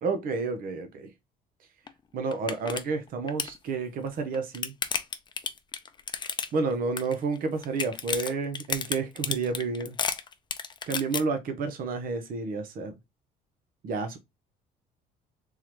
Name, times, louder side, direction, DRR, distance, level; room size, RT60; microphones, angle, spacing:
voice 1, 0.0-1.1 2.1-4.7 6.5-9.9 10.9-13.0 13.8-14.2, right 4 dB, 55° right, 0.8 m, -30 dB
sound 1, 1.9-2.0 2.3-2.8 3.1-3.6 4.2-6.7 7.0-7.4 7.6-11.2, left 6 dB, 25° left, 0.5 m, -31 dB
3.7 x 3.1 x 3.0 m
cardioid pair, 110°, 17 cm